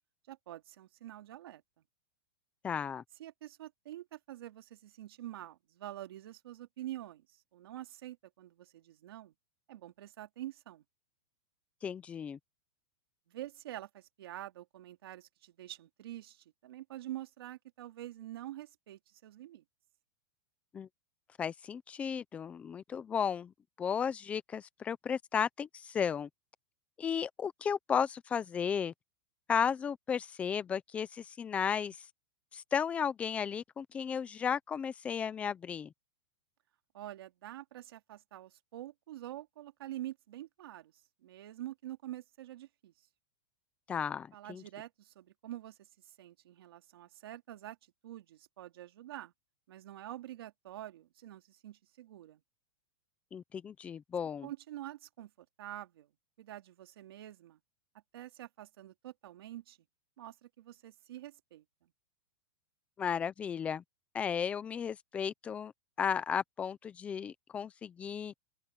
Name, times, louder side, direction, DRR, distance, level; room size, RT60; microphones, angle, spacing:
voice 1, 0.3-1.6 3.2-7.2 7.5-9.3 9.7-10.8 13.3-19.6 36.9-40.9 41.2-42.9 44.3-45.8 46.2-47.8 48.0-49.3 49.7-52.4 54.4-56.1 56.4-57.6 58.1-59.8 60.2-61.9, right 13 dB, 65° right, 2.9 m, -46 dB
voice 2, 2.6-3.0 11.8-12.4 20.7-20.9 21.4-26.3 27.0-28.9 29.5-32.1 32.5-35.9 43.9-44.6 53.3-54.5 63.0-63.8 64.1-65.7 66.0-68.3, left 7 dB, 10° left, 0.5 m, -34 dB
open air
supercardioid pair, 175°, 13 cm